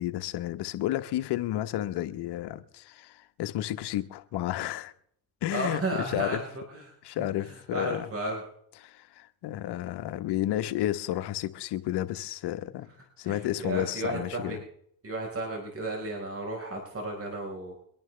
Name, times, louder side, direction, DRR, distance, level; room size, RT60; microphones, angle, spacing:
voice 1, 0.0-4.9 5.4-6.4 7.0-8.1 8.8-12.9 13.2-14.6, left 13 dB, 75° left, 1.3 m, -31 dB
voice 2, 5.5-8.4 13.2-14.6 15.0-17.7, right 2 dB, 35° right, 4.8 m, -34 dB
24.0 x 11.0 x 3.4 m
supercardioid pair, 70°, 40 cm